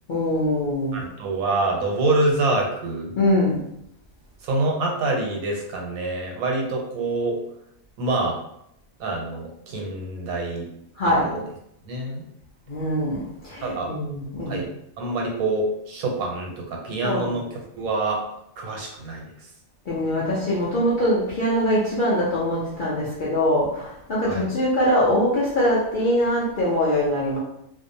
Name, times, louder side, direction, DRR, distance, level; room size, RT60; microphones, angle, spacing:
voice 1, 0.1-1.0 3.2-3.6 11.0-11.3 12.7-14.6 17.0-17.3 19.9-27.4, left 1 dB, 55° left, -7 dB, 0.6 m, -23 dB
voice 2, 0.9-3.2 4.4-7.4 8.0-8.4 9.0-10.7 11.2-11.4 11.8-12.2 13.6-13.9 14.5-14.6 15.0-17.4 17.8-18.2 18.6-19.2 24.3-24.5, right 2 dB, 90° right, 0 dB, 1.1 m, -26 dB
2.5 x 2.0 x 2.6 m, 0.78 s
omnidirectional pair, 1.4 m